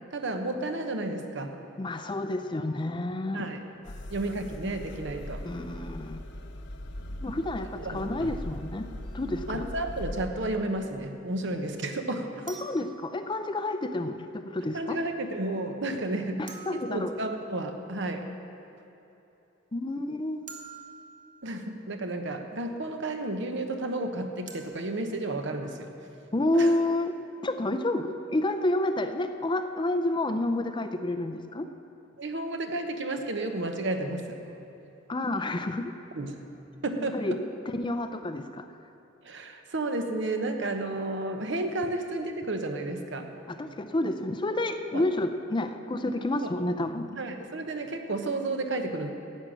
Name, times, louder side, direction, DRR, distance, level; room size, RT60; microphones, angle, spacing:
voice 1, 0.1-1.6 3.3-3.6 4.1-5.5 7.8-8.0 9.5-12.5 14.7-16.4 16.7-18.3 21.4-25.9 26.5-26.7 32.2-34.4 36.2-36.5 36.8-37.4 39.2-43.3 44.9-45.0 46.4-46.5 47.1-49.1, right 2 dB, 65° right, 5 dB, 1.0 m, -32 dB
voice 2, 1.8-3.5 5.4-6.2 7.2-8.8 9.1-9.7 12.5-15.0 16.4-17.1 19.7-20.5 26.3-27.1 27.4-31.7 35.1-35.9 37.1-37.4 37.7-38.7 43.5-47.1, left 2 dB, 25° left, 8 dB, 0.5 m, -29 dB
sound 1, 3.8-10.3, left 1 dB, 60° left, 0.8 m, -40 dB
sound 2, 9.0-9.2 12.5-13.8 16.5-17.8 20.5-21.7 24.5-24.7, right 5 dB, 40° right, 1.2 m, -48 dB
14.0 x 8.8 x 6.2 m, 3.0 s
head